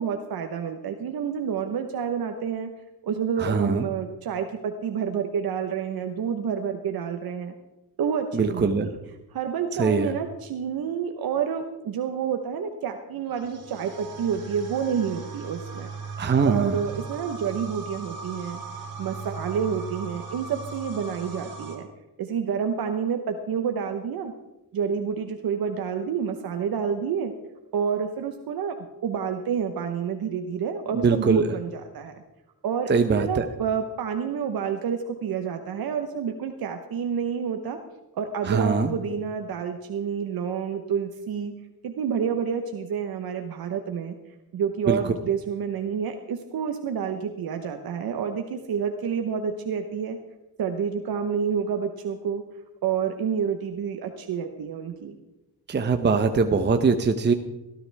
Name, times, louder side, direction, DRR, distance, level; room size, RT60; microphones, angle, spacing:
voice 1, 0.0-2.7 3.0-7.5 8.0-9.0 9.3-15.9 16.4-18.6 19.0-21.9 22.2-24.3 24.7-27.3 27.7-28.7 29.0-32.2 32.6-37.8 38.1-41.5 41.8-44.2 44.5-50.2 50.6-52.4 52.8-55.2, right 7 dB, 70° right, 6 dB, 1.1 m, -29 dB
voice 2, 3.4-3.9 8.3-8.9 9.8-10.1 16.2-16.8 30.9-31.4 32.9-33.5 38.4-38.9 44.9-45.0 55.7-57.3, right 4 dB, 30° right, 8 dB, 0.8 m, -22 dB
sound 1, 13.3-21.8, right 4 dB, 50° right, 3.9 m, -38 dB
17.5 x 13.0 x 3.5 m, 0.99 s
cardioid pair, 105°, 37 cm